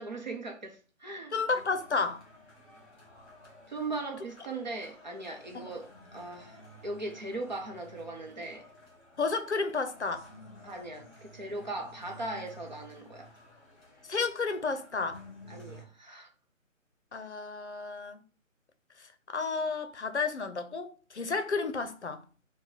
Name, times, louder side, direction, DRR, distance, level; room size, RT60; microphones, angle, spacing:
voice 1, 0.0-1.3 3.7-8.7 10.6-13.3 15.5-16.3, right 2 dB, 35° right, 0.8 m, -39 dB
voice 2, 1.3-2.2 5.5-5.7 9.2-10.3 14.0-15.2 17.1-18.2 19.0-22.2, left 4 dB, 55° left, 0.7 m, -32 dB
sound 1, 1.5-15.8, left 1 dB, 15° left, 1.7 m, -53 dB
4.4 x 2.3 x 4.4 m
figure-of-eight pair, 150°, 40 cm